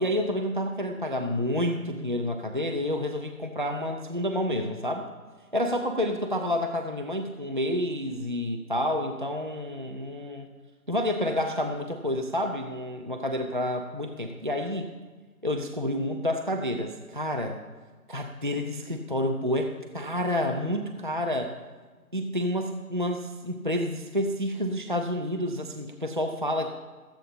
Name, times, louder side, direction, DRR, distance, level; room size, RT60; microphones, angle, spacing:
voice 1, 0.0-5.1 5.5-10.5 10.9-14.9 15.4-17.6 18.1-21.6 22.1-26.7, left 1 dB, 35° right, 3 dB, 0.5 m, -29 dB
13.5 x 8.0 x 4.2 m, 1.4 s
figure-of-eight pair, 155°, 46 cm